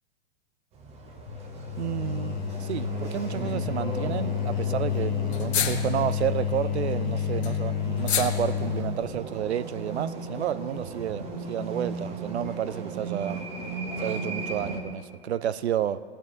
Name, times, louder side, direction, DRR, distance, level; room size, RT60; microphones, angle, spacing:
sound 1, 0.7-14.8, right 3 dB, 20° right, 1.1 m, -36 dB
sound 2, 1.3-9.0, left 10 dB, 30° left, 1.8 m, -30 dB
voice 1, 1.8-13.5 14.0-16.0, right 10 dB, 90° right, 17 dB, 0.6 m, -31 dB
sound 3, 3.4-3.8 4.1-4.2 4.4-4.5 4.7-4.8 5.3-6.2 6.8-9.0, left 8 dB, 85° left, 1.2 m, -31 dB
17.0 x 8.3 x 5.0 m, 2.2 s
hypercardioid pair, 140°, 32 cm